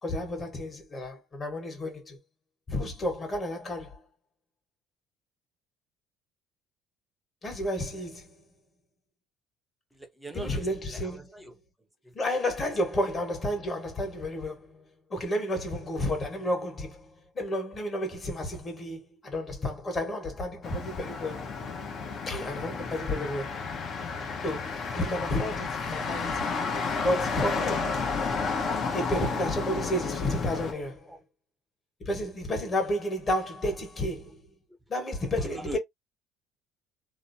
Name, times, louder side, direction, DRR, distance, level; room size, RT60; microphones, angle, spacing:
voice 1, 0.0-2.2 2.7-4.0 7.4-8.4 10.3-11.2 12.1-14.8 15.1-21.5 22.3-23.6 24.4-26.5 27.0-28.0 28.9-31.2 32.0-34.4 34.9-35.8, left 1 dB, 35° left, 1.4 m, -31 dB
voice 2, 9.9-11.5 12.0-12.1 18.5-18.6 31.1-31.2 35.4-35.8, right 1 dB, 5° right, 0.7 m, -42 dB
Motor vehicle (road), 20.6-30.7, left 4 dB, 50° left, 0.9 m, -32 dB
3.0 x 2.0 x 2.7 m
supercardioid pair, 95°, 0 cm